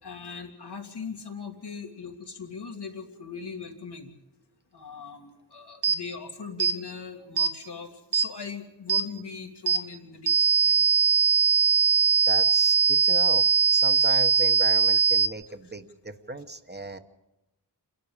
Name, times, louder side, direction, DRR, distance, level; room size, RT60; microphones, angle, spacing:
voice 1, 0.0-4.1 4.7-10.3 10.6-10.8 14.0-14.1, left 5 dB, 85° left, 2 dB, 2.3 m, -40 dB
sound 1, 5.8-6.0 6.6-6.8 7.4-7.5 8.1-8.3 8.9-9.1 9.7-9.8 10.3-15.3, right 5 dB, 75° right, 1.0 m, -21 dB
voice 2, 12.3-17.0, right 2 dB, 25° right, 8 dB, 1.1 m, -37 dB
28.0 x 12.0 x 8.8 m, 0.96 s
wide cardioid pair, 100°, 39 cm